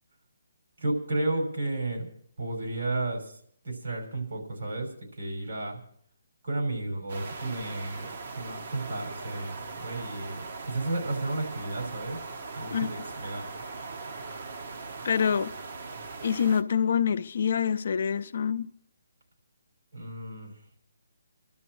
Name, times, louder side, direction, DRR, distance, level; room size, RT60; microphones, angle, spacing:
voice 1, 0.8-2.1 2.4-5.8 6.4-8.1 8.4-12.2 12.5-13.5 19.9-20.5, right 2 dB, 80° right, 5.8 m, -32 dB
sound 1, 7.1-16.6, right 3 dB, 60° right, 1.0 m, -40 dB
voice 2, 15.0-15.5 16.2-18.7, left 7 dB, 60° left, 0.5 m, -26 dB
27.0 x 12.5 x 3.1 m
hypercardioid pair, 155°, 0 cm